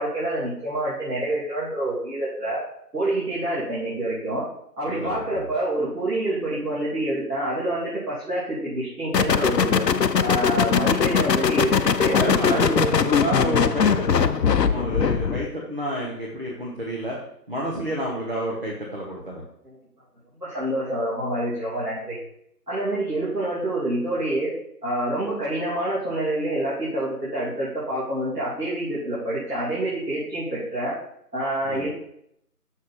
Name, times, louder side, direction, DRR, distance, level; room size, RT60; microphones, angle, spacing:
voice 1, 0.0-2.6 2.9-4.5 4.8-9.9 10.2-12.2 12.5-12.9 19.6-19.7 20.4-22.2 22.7-24.5 24.8-30.9 31.3-31.9, right 1 dB, 75° right, -9 dB, 2.8 m, -27 dB
voice 2, 4.9-5.5 12.1-17.2 17.5-19.4 31.6-31.9, equal, 35° right, -4 dB, 1.0 m, -29 dB
sound 1, 9.1-15.5, left 6 dB, 85° left, 0.6 m, -21 dB
6.3 x 3.6 x 5.7 m, 0.73 s
figure-of-eight pair, 165°, 48 cm